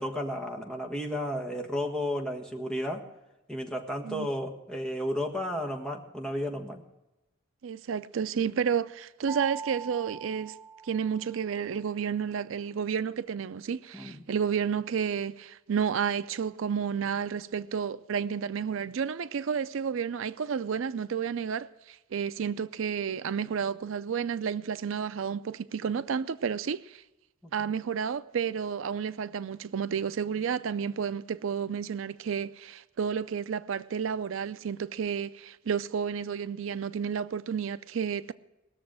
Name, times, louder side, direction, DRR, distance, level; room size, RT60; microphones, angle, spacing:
voice 1, 0.0-3.1 3.5-6.8 13.9-14.2 27.4-27.7, equal, 5° left, 1.4 m, -33 dB
voice 2, 7.6-10.6 10.8-27.0 27.5-38.3, right 7 dB, 75° right, 0.4 m, -31 dB
sound 1, 9.3-11.4, right 6 dB, 10° right, 1.0 m, -41 dB
20.0 x 6.9 x 6.3 m
head